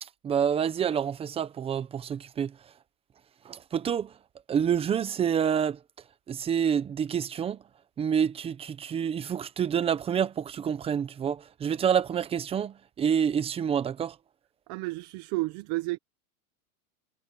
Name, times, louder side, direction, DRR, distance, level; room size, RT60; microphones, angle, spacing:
voice 1, 0.0-2.5 3.4-4.1 4.5-5.8 6.3-7.6 8.0-14.2, right 8 dB, 15° right, 0.8 m, -28 dB
voice 2, 14.7-16.0, right 21 dB, 35° right, 1.1 m, -31 dB
supercardioid pair, 155°, 43 cm